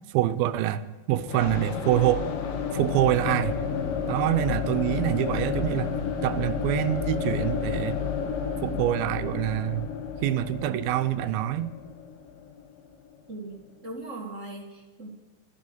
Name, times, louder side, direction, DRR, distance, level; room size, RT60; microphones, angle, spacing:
voice 1, 0.1-2.3 2.7-3.6 4.1-5.9 6.2-8.0 8.6-9.9 10.2-11.7, right 13 dB, 85° right, 11 dB, 2.5 m, -26 dB
sound 1, 1.3-13.1, left 6 dB, 70° left, 3.1 m, -31 dB
voice 2, 13.3-15.1, right 2 dB, 25° right, -1 dB, 1.8 m, -39 dB
14.5 x 10.0 x 9.5 m, 1.2 s
omnidirectional pair, 4.2 m